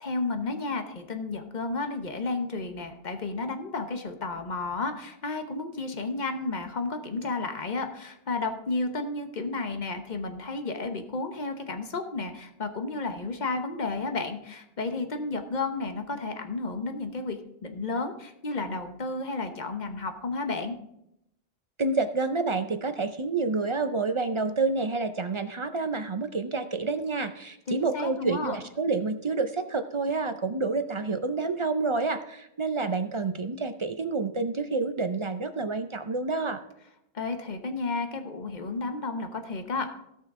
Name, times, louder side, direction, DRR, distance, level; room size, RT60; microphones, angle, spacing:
voice 1, 0.0-20.8 27.7-28.6 37.1-40.0, left 3 dB, 45° left, 6 dB, 1.0 m, -32 dB
voice 2, 21.8-36.6, right 3 dB, 40° right, 9 dB, 0.4 m, -28 dB
16.5 x 5.8 x 3.6 m, 0.80 s
omnidirectional pair, 1.1 m